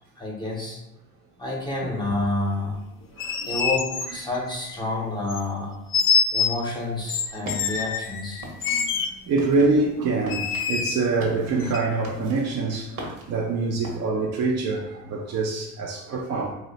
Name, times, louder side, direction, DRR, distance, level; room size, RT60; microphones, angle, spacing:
voice 1, 0.2-0.8 1.4-2.8 3.4-5.7 6.3-8.5, left 2 dB, 15° left, -3 dB, 0.7 m, -29 dB
sound 1, 3.0-4.8 5.3-5.4 5.9-6.6 7.1-9.1 10.3-11.0 11.6-11.8, left 6 dB, 40° left, 0.4 m, -25 dB
voice 2, 3.1-3.5 8.7-16.5, right 3 dB, 50° right, -2 dB, 0.5 m, -25 dB
sound 2, 7.3-14.0, right 1 dB, 65° right, 1.0 m, -41 dB
2.7 x 2.1 x 3.9 m, 0.88 s
cardioid pair, 110°, 34 cm